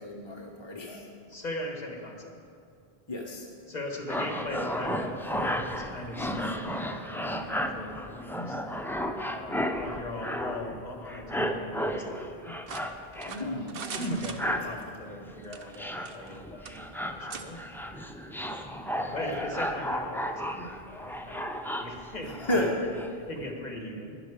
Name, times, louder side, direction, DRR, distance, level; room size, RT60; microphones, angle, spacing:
voice 1, 0.0-1.1 3.1-3.5 13.3-14.0 19.2-19.3 22.4-22.7, left 1 dB, 30° left, -1 dB, 0.9 m, -32 dB
voice 2, 1.3-2.4 3.7-8.6 9.2-12.5 13.4-16.8 17.1-17.6 18.9-24.2, left 1 dB, 45° left, 2 dB, 1.5 m, -39 dB
sound 1, 4.1-10.8 11.1-13.5 13.8-14.7 15.2-15.4 15.8-23.1 23.3-23.5, equal, 5° left, 0.3 m, -34 dB
sound 2, 12.7-14.9 15.4-16.4 16.6-16.8 17.3-17.5, right 6 dB, 65° right, 0.9 m, -41 dB
12.0 x 11.0 x 4.9 m, 2.5 s
omnidirectional pair, 1.0 m